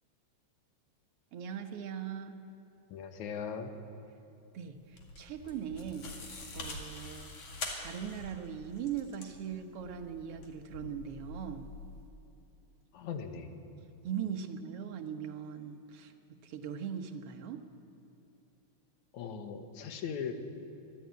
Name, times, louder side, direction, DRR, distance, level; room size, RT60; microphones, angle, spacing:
voice 1, 1.3-2.4 4.5-6.1 6.5-7.3 7.8-11.7 14.0-16.1 16.4-17.7, right 8 dB, 60° right, 6 dB, 1.9 m, -40 dB
voice 2, 2.9-3.8 12.9-13.6 19.1-20.3, left 7 dB, 80° left, 7 dB, 2.6 m, -39 dB
sound 1, 4.7-12.1, left 3 dB, 55° left, 3.2 m, -45 dB
24.0 x 12.0 x 9.4 m, 2.7 s
omnidirectional pair, 3.3 m